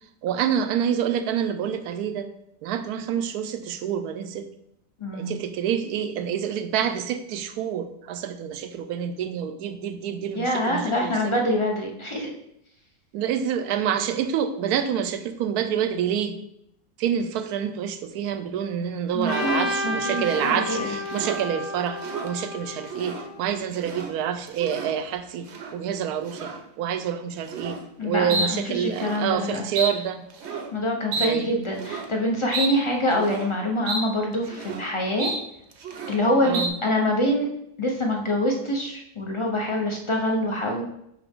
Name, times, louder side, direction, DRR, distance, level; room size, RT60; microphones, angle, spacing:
voice 1, 0.2-2.3 2.6-4.5 5.1-11.4 13.1-16.4 17.0-30.2 31.2-31.5 36.4-36.8, right 8 dB, 75° right, 10 dB, 1.1 m, -27 dB
voice 2, 5.0-5.4 10.3-12.3 19.1-20.9 28.0-29.6 30.7-35.3 36.1-37.5 37.8-40.8, left 1 dB, 30° left, 1 dB, 0.5 m, -25 dB
Trumpet, 19.3-23.4, left 2 dB, 70° left, 1.3 m, -31 dB
sound 1, 19.3-19.7 20.2-20.6 21.1-21.5 21.9-22.3 22.8-23.3 23.6-24.1 24.5-25.0 25.4-25.8 26.3-26.6 27.4-27.8 28.3-28.5 28.8-29.2 29.8-29.9 30.3-30.7 31.1-31.3 31.7-32.1 32.5-32.7 33.1-33.5 33.9-34.0 34.3-34.8 35.2-35.4 35.7-36.2 36.5-36.7, right 3 dB, 55° right, 0.9 m, -31 dB
5.9 x 5.6 x 3.6 m, 0.77 s
omnidirectional pair, 1.7 m